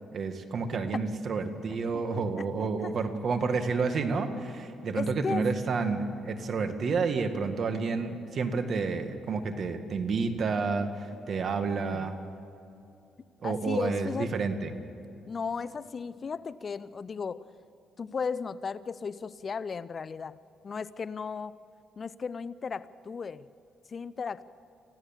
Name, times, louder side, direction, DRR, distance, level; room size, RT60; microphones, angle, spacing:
voice 1, 0.1-12.1 13.4-14.7, right 4 dB, 55° right, 8 dB, 1.9 m, -30 dB
voice 2, 1.7-2.9 4.9-5.6 6.9-7.0 11.8-12.1 13.4-14.3 15.3-17.5 18.0-20.4 20.6-21.6 22.0-23.5 23.9-24.4, left 5 dB, 40° left, 15 dB, 0.6 m, -36 dB
25.0 x 15.5 x 7.3 m, 2.8 s
cardioid pair, 90°, 0 cm